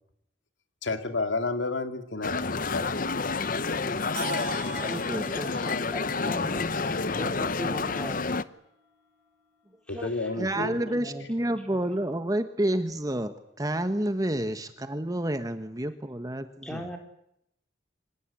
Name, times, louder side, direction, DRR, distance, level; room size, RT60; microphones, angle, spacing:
voice 1, 0.8-3.2 9.9-11.0, left 3 dB, 75° left, 9 dB, 2.6 m, -31 dB
sound 1, 2.2-8.4, left 4 dB, 45° left, 0.9 m, -29 dB
sound 2, 4.2-8.1, right 3 dB, 50° right, 7.1 m, -41 dB
voice 2, 4.7-5.4 9.9-10.1 10.4-17.0, right 1 dB, 20° right, 9 dB, 1.3 m, -30 dB
voice 3, 5.3-8.2 9.9-10.3 10.5-11.9 16.6-17.0, equal, 5° left, 3 dB, 4.9 m, -39 dB
26.0 x 18.5 x 10.0 m, 0.75 s
head